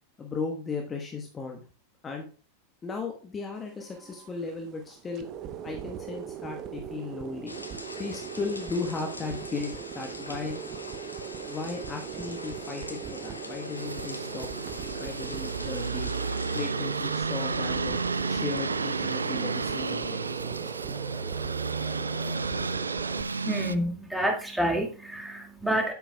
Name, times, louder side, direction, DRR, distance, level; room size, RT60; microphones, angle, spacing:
voice 1, 0.2-1.6 2.0-2.3 2.8-5.3 5.6-7.5 8.0-10.6 11.5-14.5 15.0-16.1 16.5-18.0 18.3-20.3 20.6-20.7, left 4 dB, 20° left, 2 dB, 1.2 m, -36 dB
sound 1, 3.6-23.2, right 9 dB, 35° right, 0.8 m, -40 dB
sound 2, 7.5-16.7, left 2 dB, 85° left, 1.1 m, -43 dB
sound 3, 13.8-23.8, right 4 dB, 75° right, 0.4 m, -31 dB
voice 2, 23.4-25.9, equal, 5° right, 2 dB, 1.9 m, -28 dB
8.6 x 8.2 x 2.2 m, 0.38 s
figure-of-eight pair, 90°, 0 cm